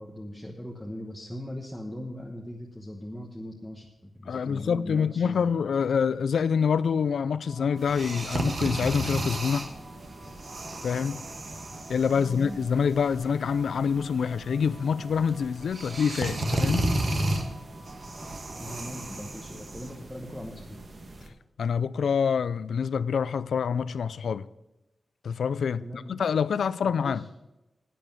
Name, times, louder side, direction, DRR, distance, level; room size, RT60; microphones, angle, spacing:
voice 1, 0.0-5.5 12.2-12.6 18.6-20.8 25.8-26.2 26.8-27.2, equal, 5° left, 1.0 m, -40 dB
voice 2, 4.3-9.7 10.8-11.2 11.9-16.9 21.6-24.5 25.2-27.2, left 6 dB, 85° left, 0.4 m, -26 dB
sound 1, 7.4-18.8, right 1 dB, 60° right, 2.5 m, -51 dB
sound 2, 7.8-21.3, right 1 dB, 40° right, 1.3 m, -34 dB
11.0 x 9.2 x 6.0 m
wide cardioid pair, 170°, 0 cm